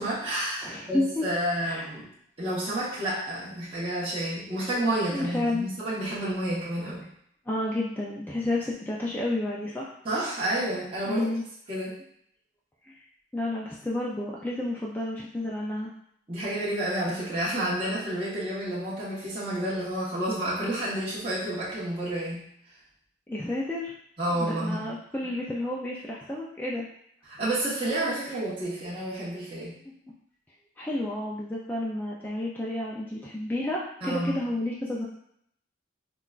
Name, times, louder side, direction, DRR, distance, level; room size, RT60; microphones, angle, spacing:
voice 1, 0.0-2.1 2.4-7.0 10.0-11.3 11.7-11.9 16.3-22.4 24.2-24.9 27.3-29.7 34.0-34.4, right 1 dB, 30° right, -10 dB, 1.1 m, -30 dB
voice 2, 0.6-1.3 1.6-1.9 5.1-5.7 7.5-9.9 11.0-11.4 12.8-12.9 13.3-15.9 23.3-23.9 24.3-26.9 30.8-35.1, left 1 dB, 10° left, -4 dB, 0.3 m, -31 dB
5.6 x 2.2 x 2.4 m, 0.70 s
head